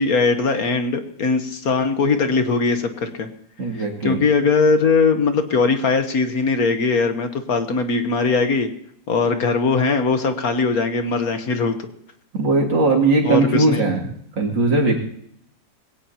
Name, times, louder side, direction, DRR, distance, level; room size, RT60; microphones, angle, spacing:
voice 1, 0.0-3.3 3.8-8.7 9.1-11.9 13.2-13.8, left 4 dB, 55° left, 8 dB, 1.4 m, -20 dB
voice 2, 3.6-4.2 12.3-14.1 14.4-15.0, right 3 dB, 80° right, -1 dB, 3.3 m, -19 dB
21.0 x 17.0 x 2.9 m, 0.69 s
omnidirectional pair, 2.0 m